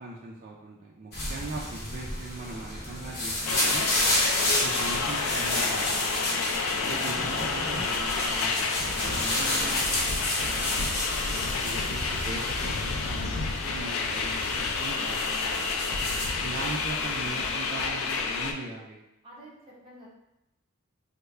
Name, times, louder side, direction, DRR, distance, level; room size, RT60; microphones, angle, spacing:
voice 1, 0.0-3.9 4.6-6.0 6.7-10.8 11.4-15.7 16.4-19.0, right 2 dB, 40° right, -3 dB, 0.4 m, -40 dB
sound 1, 1.1-16.3, left 1 dB, 50° left, 0.9 m, -31 dB
sound 2, 2.4-11.7, left 1 dB, 20° left, 1.1 m, -51 dB
sound 3, 3.5-18.5, left 4 dB, 80° left, 0.4 m, -30 dB
voice 2, 6.7-7.1 16.2-16.5 19.2-20.1, right 1 dB, 25° right, -7 dB, 1.0 m, -49 dB
3.4 x 2.1 x 3.2 m, 0.89 s
head